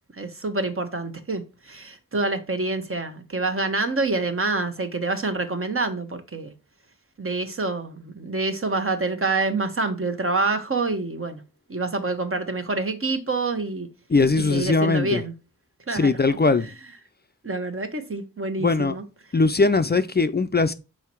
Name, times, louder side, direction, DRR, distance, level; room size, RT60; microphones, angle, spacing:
voice 1, 0.1-6.5 7.2-11.4 11.7-13.9 14.4-15.3 15.9-16.4 17.4-19.0, right 3 dB, 40° right, 1.3 m, -27 dB
voice 2, 14.1-15.2 15.9-16.7 18.6-18.9 19.3-20.7, left 3 dB, 30° left, 0.5 m, -20 dB
5.6 x 4.3 x 4.5 m
cardioid pair, 40°, 34 cm